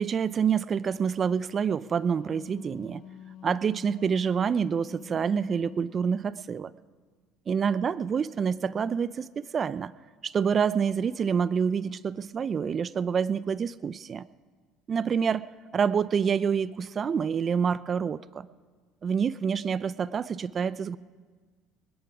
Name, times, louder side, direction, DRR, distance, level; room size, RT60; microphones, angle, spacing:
voice 1, 0.0-3.0 3.4-6.7 7.5-9.9 10.2-14.3 14.9-15.5 15.7-18.5 19.0-21.0, right 6 dB, 35° right, 18 dB, 0.4 m, -27 dB
Wind instrument woodwind instrument, 1.9-6.1, left 10 dB, 55° left, 1.3 m, -47 dB
21.0 x 10.5 x 5.0 m, 1.5 s
supercardioid pair, 90°, 0 cm